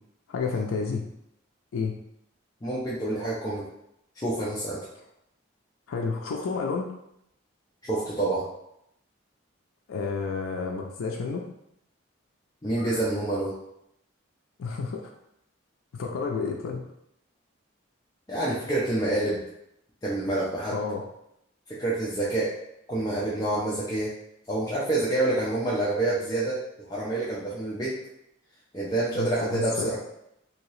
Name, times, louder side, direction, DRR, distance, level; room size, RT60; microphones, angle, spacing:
voice 1, 0.3-1.1 1.7-1.9 5.9-6.9 9.9-11.5 14.6-15.1 15.9-16.9 20.7-21.0 29.2-29.9, left 4 dB, 90° left, 0 dB, 0.4 m, -30 dB
voice 2, 2.6-3.6 4.2-4.8 7.8-8.4 12.6-13.5 18.3-19.4 20.0-20.8 21.8-22.5 22.9-24.1 24.5-26.6 26.9-28.0 28.7-30.0, right 2 dB, 20° left, -8 dB, 0.5 m, -27 dB
2.8 x 2.7 x 3.1 m, 0.79 s
head